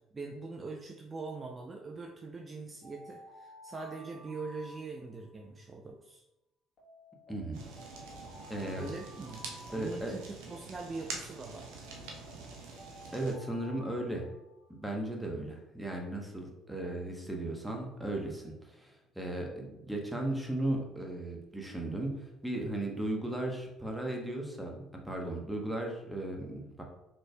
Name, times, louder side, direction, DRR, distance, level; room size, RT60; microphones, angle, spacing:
voice 1, 0.1-6.2 8.7-9.4 9.7-11.7, right 3 dB, 30° right, 2 dB, 0.4 m, -42 dB
Alarm, 2.8-5.4 6.8-10.4 11.8-15.0, equal, 50° left, 1.2 m, -54 dB
voice 2, 7.3-7.6 8.5-8.9 9.7-10.1 13.1-14.2 14.7-26.8, right 1 dB, 5° right, 0 dB, 1.0 m, -36 dB
Fire, 7.5-13.3, right 3 dB, 75° right, 0.6 m, -46 dB
4.1 x 3.2 x 2.2 m, 0.93 s
hypercardioid pair, 55°, 0 cm